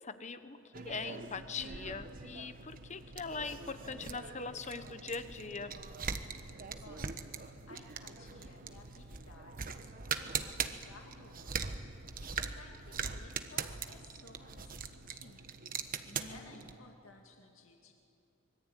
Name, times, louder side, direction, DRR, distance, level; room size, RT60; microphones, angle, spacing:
voice 1, 0.0-5.7 16.1-16.6, left 4 dB, 35° left, 11 dB, 1.2 m, -42 dB
sound 1, 0.7-16.8, right 6 dB, 45° right, 1.2 m, -42 dB
voice 2, 6.8-15.5 16.3-17.9, left 2 dB, 80° left, 2 dB, 2.2 m, -57 dB
25.0 x 22.5 x 9.2 m, 2.7 s
head